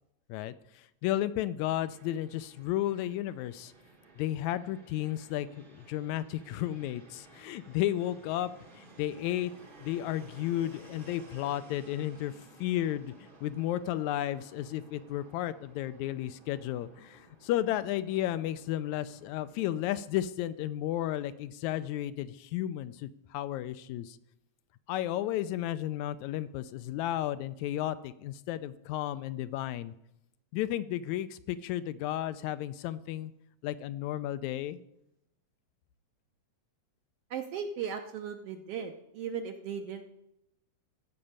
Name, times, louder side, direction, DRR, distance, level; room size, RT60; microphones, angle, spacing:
voice 1, 0.3-3.7 4.2-8.5 8.8-9.5 9.8-12.3 12.6-13.1 13.4-24.2 24.9-29.9 30.5-33.3 33.6-34.8, left 13 dB, 80° left, 13 dB, 1.9 m, -33 dB
Fixed-wing aircraft airplane, 1.9-19.9, right 2 dB, 40° right, 0.7 m, -56 dB
voice 2, 37.3-40.0, right 7 dB, 70° right, 6 dB, 1.4 m, -37 dB
14.5 x 5.3 x 8.8 m, 0.83 s
omnidirectional pair, 3.4 m